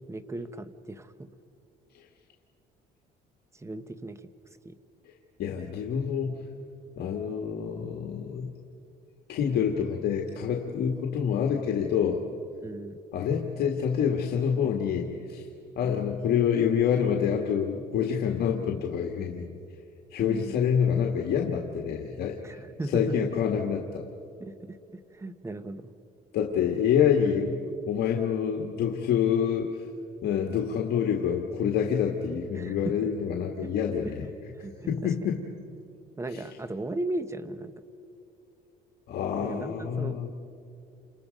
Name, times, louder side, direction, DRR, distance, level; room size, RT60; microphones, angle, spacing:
voice 1, 0.1-1.3 3.5-4.3 4.6-4.8 12.6-13.0 15.8-16.0 20.2-20.6 22.4-23.3 24.4-25.9 32.5-33.2 33.6-33.7 34.0-34.1 34.6-35.3 36.2-37.7 39.4-40.2, right 2 dB, 15° right, 12 dB, 1.1 m, -37 dB
voice 2, 5.4-6.5 7.0-8.5 9.3-12.2 13.1-15.5 15.8-19.6 20.1-22.6 22.9-24.1 26.3-29.7 30.2-34.3 34.9-35.4 36.3-36.4 39.1-40.3, left 8 dB, 70° left, 1 dB, 1.8 m, -27 dB
30.0 x 27.5 x 5.3 m, 2.6 s
cardioid pair, 110°, 17 cm